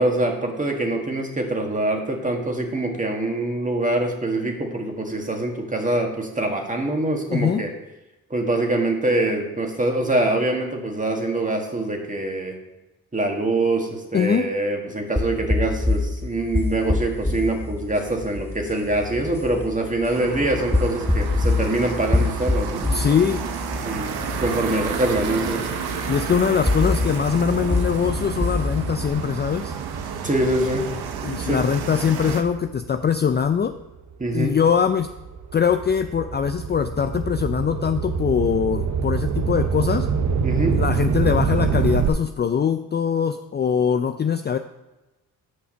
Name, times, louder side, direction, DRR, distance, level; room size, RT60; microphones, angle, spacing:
voice 1, 0.0-7.7 8.3-12.5 13.1-23.1 23.8-25.7 30.2-30.9 31.4-31.6 34.2-34.5 40.4-40.8, right 2 dB, 20° right, 2 dB, 1.9 m, -24 dB
voice 2, 7.3-7.6 14.1-14.5 22.9-23.4 26.1-29.8 31.2-33.8 34.3-35.1 35.5-40.1 40.7-44.6, left 7 dB, 30° left, 8 dB, 0.4 m, -22 dB
sound 1, 15.2-29.1, left 2 dB, 5° left, 0.7 m, -26 dB
sound 2, 20.1-32.4, right 6 dB, 80° right, 0.9 m, -31 dB
sound 3, 26.8-33.5 34.1-42.1, right 6 dB, 50° right, 0.8 m, -27 dB
6.6 x 5.6 x 6.2 m, 1.0 s
supercardioid pair, 60°, 37 cm